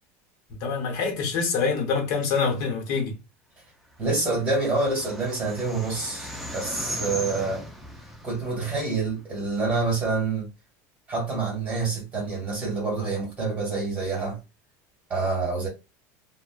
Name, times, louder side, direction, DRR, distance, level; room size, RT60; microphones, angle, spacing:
voice 1, 0.6-3.2, left 5 dB, 50° left, 0.9 m, -25 dB
voice 2, 4.0-7.6 8.2-10.5 11.1-14.4 15.1-15.7, right 3 dB, 20° right, 1.5 m, -27 dB
sound 1, 4.2-9.5, equal, ahead, 0.4 m, -37 dB
2.7 x 2.1 x 2.3 m
cardioid pair, 170°, 8 cm